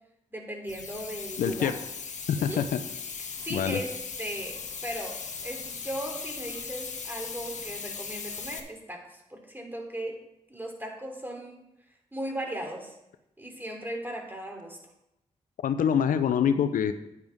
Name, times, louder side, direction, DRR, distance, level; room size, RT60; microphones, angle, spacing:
voice 1, 0.3-1.8 2.3-2.7 3.4-10.2 10.5-11.6 12.1-12.9 13.4-14.8, right 1 dB, 15° right, 1 dB, 3.3 m, -37 dB
sound 1, 0.7-8.6, left 5 dB, 60° left, 1.3 m, -38 dB
voice 2, 1.4-1.7 2.3-2.8 3.5-3.8 15.6-16.9, left 8 dB, 85° left, 10 dB, 0.6 m, -25 dB
10.0 x 9.7 x 3.6 m, 0.86 s
supercardioid pair, 45°, 14 cm